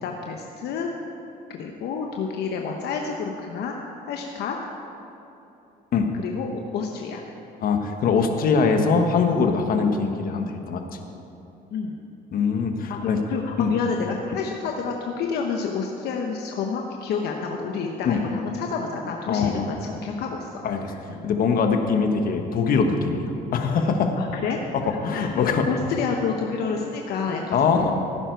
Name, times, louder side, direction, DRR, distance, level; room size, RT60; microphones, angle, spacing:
voice 1, 0.0-0.9 1.5-3.8 4.1-4.6 6.2-7.2 11.7-12.0 12.9-20.6 20.9-21.2 24.2-27.9, left 5 dB, 75° left, 1 dB, 1.0 m, -29 dB
voice 2, 7.6-10.8 12.3-13.2 13.6-13.7 18.0-18.2 19.3-19.7 20.6-20.9 21.2-23.2 23.5-24.1 24.7-25.6 27.5-27.9, left 5 dB, 60° left, 5 dB, 1.3 m, -22 dB
16.0 x 10.0 x 4.6 m, 2.9 s
cardioid pair, 110°, 17 cm